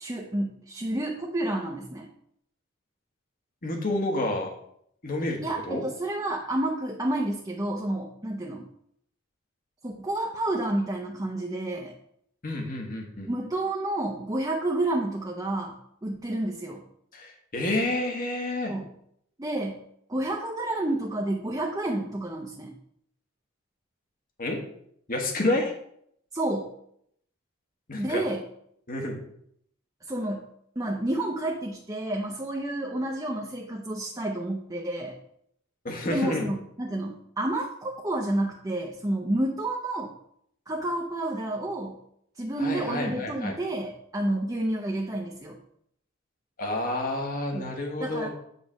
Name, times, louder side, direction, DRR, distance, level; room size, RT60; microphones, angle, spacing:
voice 1, 0.0-2.1 5.4-8.7 9.8-11.9 13.3-16.8 18.7-18.9 19.4-19.8 20.1-22.7 26.3-26.7 28.0-28.4 30.0-30.5 30.8-35.2 36.0-40.1 40.7-42.0 42.4-45.6 47.5-47.7 48.0-48.3, right 1 dB, 15° right, 0 dB, 0.7 m, -30 dB
voice 2, 3.6-4.5 5.0-5.4 5.7-5.8 12.4-13.3 17.1-18.7 24.4-24.6 25.1-25.7 27.9-28.2 28.9-29.2 35.8-36.5 42.6-43.5 46.6-48.3, left 1 dB, 40° left, 1 dB, 1.4 m, -29 dB
8.2 x 3.3 x 6.2 m, 0.71 s
head